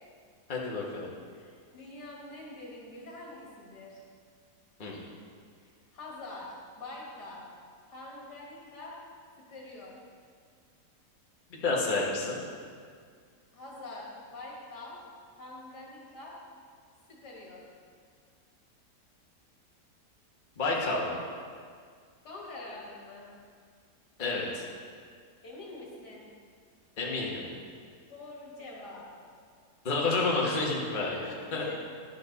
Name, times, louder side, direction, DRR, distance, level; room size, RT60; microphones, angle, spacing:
voice 1, 0.5-1.1 4.8-5.0 11.5-12.4 20.6-21.2 24.2-24.7 27.0-27.4 29.8-31.7, left 3 dB, 30° left, -3 dB, 1.3 m, -30 dB
voice 2, 1.3-4.0 5.6-7.5 7.9-8.9 9.5-9.9 13.5-15.0 15.4-16.3 17.1-17.7 20.6-20.8 22.2-23.3 25.4-26.2 28.1-29.1 31.0-31.7, left 2 dB, 75° left, -4 dB, 2.4 m, -45 dB
10.5 x 7.9 x 4.0 m, 2.1 s
omnidirectional pair, 1.8 m